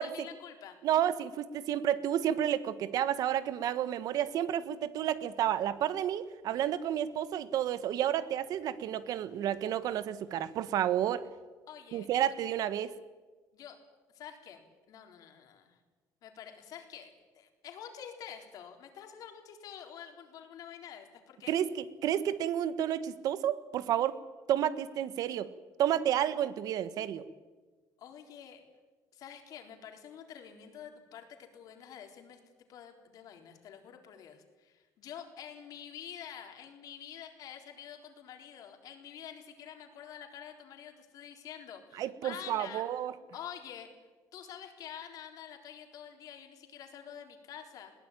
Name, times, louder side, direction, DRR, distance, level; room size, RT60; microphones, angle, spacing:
voice 1, 0.0-0.8 11.7-12.1 13.5-13.8 14.1-15.8 16.2-21.5 28.0-28.6 29.1-32.4 32.7-42.8 43.3-43.9 44.3-47.9, left 9 dB, 60° left, 4 dB, 4.0 m, -48 dB
voice 2, 0.8-11.3 11.9-13.0 21.5-24.2 24.5-25.5 25.8-27.3 42.0-43.1, right 10 dB, 60° right, 14 dB, 1.3 m, -31 dB
21.0 x 17.5 x 10.0 m, 1.3 s
cardioid pair, 120°, 7 cm